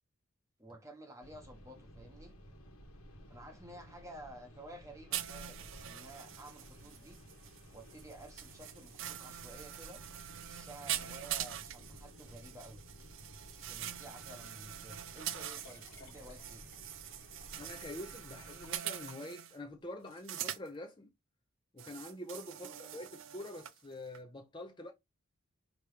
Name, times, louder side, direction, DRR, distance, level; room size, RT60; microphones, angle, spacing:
voice 1, 0.6-2.3 3.3-7.2 7.7-10.0 10.5-12.9 13.5-16.6 22.6-22.8, right 1 dB, 15° right, 1.1 m, -52 dB
sound 1, 1.2-18.8, equal, 85° left, 1.3 m, -55 dB
sound 2, 5.1-19.6 20.1-20.7 21.8-23.8 24.1-24.2, right 11 dB, 65° right, 0.5 m, -44 dB
Liquid, 15.1-19.7 20.4-20.5, left 4 dB, 45° left, 1.3 m, -60 dB
voice 2, 17.6-21.1 21.7-24.9, left 1 dB, 20° left, 0.6 m, -46 dB
5.2 x 2.9 x 3.3 m
head